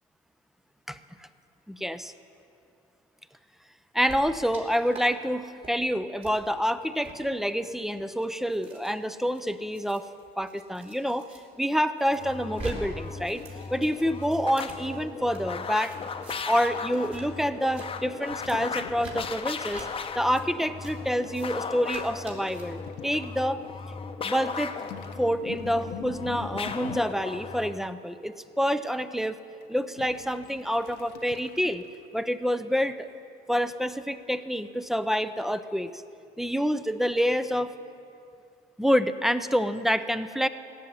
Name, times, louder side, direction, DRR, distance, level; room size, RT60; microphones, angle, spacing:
voice 1, 0.9-1.3 1.7-2.1 3.9-10.1 10.4-13.4 13.7-16.0 16.5-19.9 20.2-23.6 24.2-24.7 25.2-29.4 29.7-31.8 32.1-33.1 33.5-36.0 36.4-37.7 38.8-40.5, equal, ahead, 12 dB, 0.5 m, -27 dB
sound 1, 4.0-4.6 4.9-5.0 5.4-5.7 6.2-6.3 6.9-7.1 7.8-11.4 11.7-12.8 13.0-15.4 15.8-16.7 16.9-17.2 17.5-17.9 18.4-18.6 19.0-19.1 19.7-19.9 20.3-20.4 20.8-20.9 21.3-21.5 21.8-22.6, right 3 dB, 40° right, 3.4 m, -45 dB
sound 2, 12.1-27.8, left 5 dB, 35° left, 0.8 m, -37 dB
sound 3, 18.3-19.4 19.7-19.8 22.6-23.3 24.8-27.4 29.6-32.1 32.4-32.5, left 10 dB, 90° left, 0.8 m, -43 dB
16.5 x 7.4 x 9.6 m, 2.6 s
cardioid pair, 110°, 17 cm